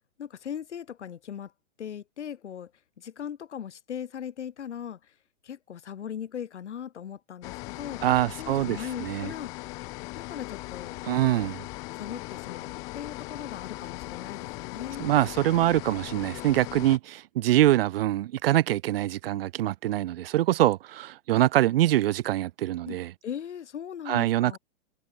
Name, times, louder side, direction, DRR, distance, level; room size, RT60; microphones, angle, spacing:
voice 1, 0.2-1.5 1.8-2.7 3.0-5.1 5.4-8.0 8.4-9.5 10.1-11.0 12.0-15.1 22.8-24.6, left 8 dB, 85° left, 6.4 m, -39 dB
sound 1, 7.4-17.0, left 26 dB, 10° left, 0.4 m, -39 dB
voice 2, 8.0-9.3 11.0-11.7 15.0-23.1 24.1-24.6, right 14 dB, 60° right, 0.4 m, -24 dB
hypercardioid pair, 160°, 34 cm